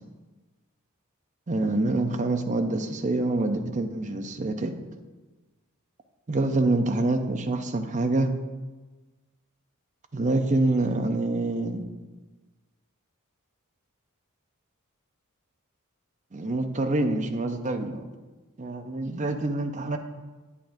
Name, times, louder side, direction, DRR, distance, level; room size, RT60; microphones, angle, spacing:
voice 1, 1.5-4.7 6.3-8.3 10.1-11.8 16.3-18.0 18.6-20.0, right 2 dB, 35° right, 6 dB, 0.6 m, -26 dB
8.5 x 8.3 x 2.6 m, 1.2 s
head